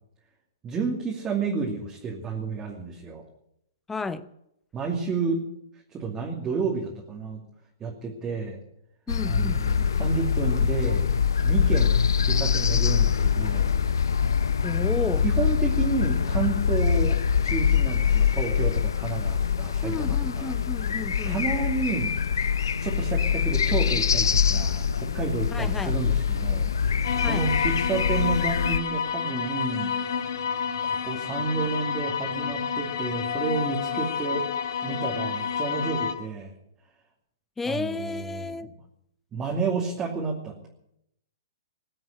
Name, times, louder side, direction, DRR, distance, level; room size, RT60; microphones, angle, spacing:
voice 1, 0.6-3.2 4.7-5.4 5.9-7.4 7.8-8.6 9.2-11.1 11.4-13.7 15.2-20.5 21.3-22.1 22.8-29.9 30.8-34.4 34.8-36.5 37.6-38.7 39.3-40.7, right 4 dB, 20° right, -2 dB, 2.6 m, -31 dB
voice 2, 3.9-4.3 9.1-9.6 14.6-15.2 19.8-21.4 25.5-26.0 27.2-27.5 37.6-38.7, left 4 dB, 10° left, 13 dB, 0.8 m, -32 dB
sound 1, 9.1-28.8, left 7 dB, 85° left, 0.8 m, -24 dB
sound 2, 27.0-36.1, left 6 dB, 65° left, 2.0 m, -29 dB
21.0 x 7.9 x 8.3 m, 0.77 s
hypercardioid pair, 135°, 2 cm